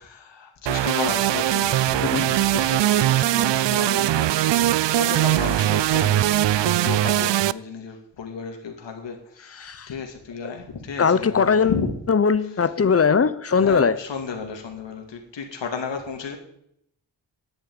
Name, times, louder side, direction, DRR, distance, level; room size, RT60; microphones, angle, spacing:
voice 1, 0.0-11.9 13.5-16.4, left 5 dB, 75° left, 2 dB, 2.3 m, -33 dB
sound 1, 0.7-7.5, right 13 dB, 75° right, 0.5 m, -21 dB
voice 2, 9.5-9.9 10.4-10.5 11.0-14.0, left 6 dB, 35° left, 15 dB, 0.9 m, -20 dB
10.5 x 8.8 x 9.4 m, 0.72 s
wide cardioid pair, 105°, 44 cm